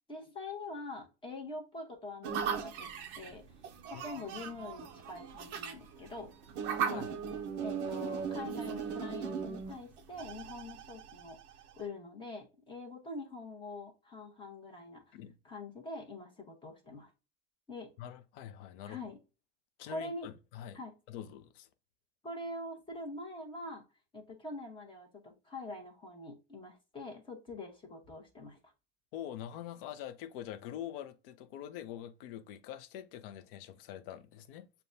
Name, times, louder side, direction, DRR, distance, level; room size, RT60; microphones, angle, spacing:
voice 1, 0.1-2.9 3.2-3.4 3.9-6.3 6.9-7.1 7.6-11.4 11.8-15.2 15.4-17.1 17.7-17.9 18.8-19.2 19.9-20.3 20.7-20.9 22.2-23.8 24.1-28.7, left 2 dB, 15° left, 0.9 m, -44 dB
sound 1, 2.2-11.8, right 6 dB, 35° right, 0.5 m, -38 dB
voice 2, 18.0-19.0 19.8-20.8 21.1-21.7 29.1-34.7, left 11 dB, 50° left, 0.6 m, -45 dB
6.7 x 2.3 x 2.5 m
supercardioid pair, 150°, 35 cm